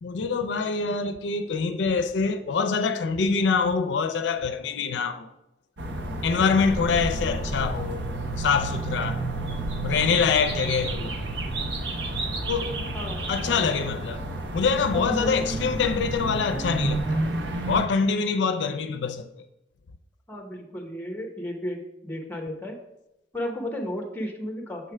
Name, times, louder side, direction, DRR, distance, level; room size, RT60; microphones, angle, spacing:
voice 1, 0.0-5.3 6.2-8.1 8.4-9.2 9.8-11.2 12.5-12.7 13.3-14.2 14.5-17.2 17.7-19.4, left 5 dB, 80° left, 0.4 m, -25 dB
sound 1, 5.8-17.9, right 2 dB, 75° right, 0.7 m, -30 dB
voice 2, 12.9-13.6 14.9-15.4 20.3-22.8 23.3-24.9, equal, 10° left, 0.8 m, -34 dB
6.7 x 3.2 x 4.7 m
head